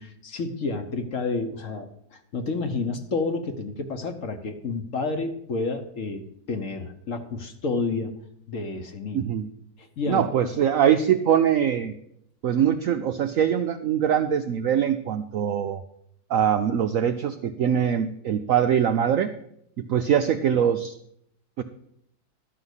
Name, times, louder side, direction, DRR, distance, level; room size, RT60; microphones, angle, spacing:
voice 1, 0.0-8.1 8.5-9.2 10.0-10.2, left 3 dB, 50° left, 7 dB, 1.2 m, -30 dB
voice 2, 9.1-9.5 10.1-11.9 12.4-15.8 16.3-19.3 19.9-20.9 21.6-21.7, right 9 dB, 70° right, 8 dB, 0.7 m, -22 dB
12.5 x 5.7 x 8.1 m, 0.73 s
omnidirectional pair, 2.0 m